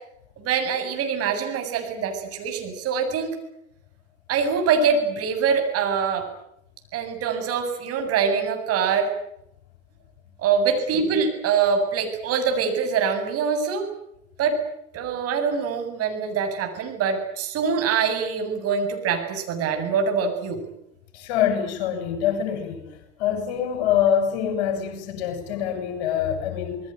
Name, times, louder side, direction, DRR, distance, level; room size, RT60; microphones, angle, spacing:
voice 1, 0.4-3.3 4.3-6.3 6.9-9.1 10.4-13.8 14.4-14.6 14.9-20.6, right 6 dB, 40° right, 7.8 m, -24 dB
voice 2, 21.1-22.9 23.2-26.8, left 9 dB, 60° left, 7.5 m, -25 dB
27.5 x 20.5 x 9.2 m
figure-of-eight pair, 80°, 35 cm